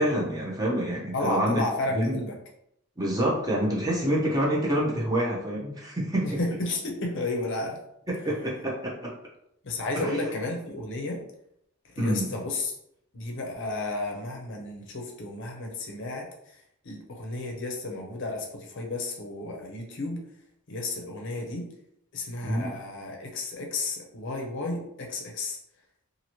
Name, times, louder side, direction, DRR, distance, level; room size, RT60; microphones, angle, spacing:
voice 1, 0.0-1.7 1.9-2.2 3.0-6.4 8.1-8.9 9.9-10.2 12.0-12.3 22.4-22.7, equal, 15° right, -4 dB, 0.6 m, -27 dB
voice 2, 1.1-2.3 6.2-7.8 9.6-11.2 12.0-12.7 13.1-16.3 16.8-20.2 20.7-21.6 22.1-25.6, left 2 dB, 55° left, 1 dB, 0.6 m, -32 dB
2.8 x 2.5 x 2.9 m, 0.76 s
head